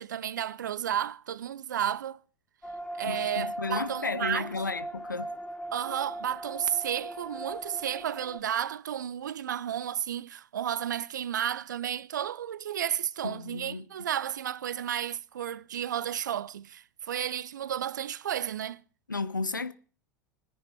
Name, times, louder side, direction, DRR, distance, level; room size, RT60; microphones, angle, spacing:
voice 1, 0.0-2.2 2.9-4.5 5.7-18.8, right 10 dB, 75° right, 0.6 m, -32 dB
sound 1, 2.6-8.4, right 1 dB, 10° left, 2.5 m, -39 dB
voice 2, 3.0-5.3 13.2-13.8 19.1-19.7, left 3 dB, 90° left, 1.0 m, -33 dB
25.0 x 10.0 x 4.5 m
figure-of-eight pair, 80°, 10 cm